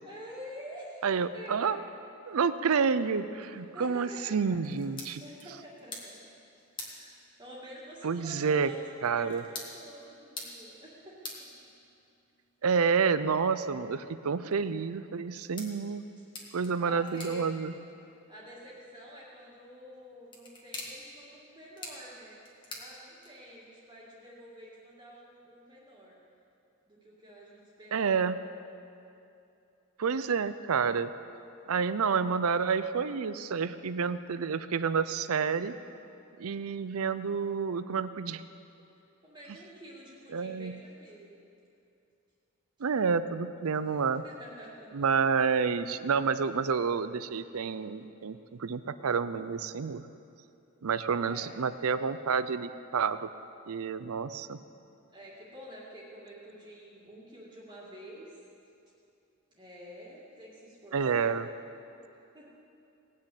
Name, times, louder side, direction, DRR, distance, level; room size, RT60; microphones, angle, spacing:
voice 1, 0.0-1.1 1.3-1.9 2.3-2.4 3.7-4.6 5.2-6.2 6.6-11.2 16.2-16.3 16.8-17.6 18.0-22.4 22.7-26.2 26.9-28.4 39.2-41.3 43.8-45.1 51.2-51.5 55.1-58.4 59.5-61.6 62.3-62.5, equal, 20° right, -6 dB, 2.1 m, -48 dB
voice 2, 1.0-1.8 2.3-5.2 8.0-8.7 9.0-9.4 12.6-16.0 16.5-17.7 27.9-28.4 30.0-31.1 31.7-35.7 36.4-38.4 40.3-40.8 42.8-44.2 44.9-50.1 50.8-53.3 53.7-54.6 60.9-61.5, right 5 dB, 80° right, 13 dB, 0.5 m, -29 dB
sound 1, 4.6-23.7, left 2 dB, 20° left, 1.8 m, -49 dB
19.0 x 6.4 x 8.4 m, 2.7 s
head